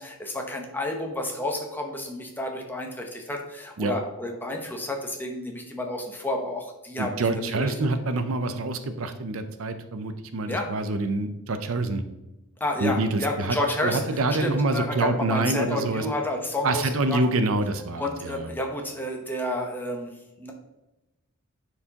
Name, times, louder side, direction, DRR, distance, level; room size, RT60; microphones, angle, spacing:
voice 1, 0.0-7.2 7.5-7.7 10.5-10.7 12.6-14.1 14.4-17.2 18.0-20.1 20.4-20.5, left 1 dB, 10° left, 2 dB, 0.9 m, -30 dB
voice 2, 7.0-12.0 12.8-13.6 13.8-16.0 16.6-18.5, right 2 dB, 70° right, 9 dB, 0.6 m, -26 dB
10.5 x 4.6 x 2.9 m, 1.0 s
head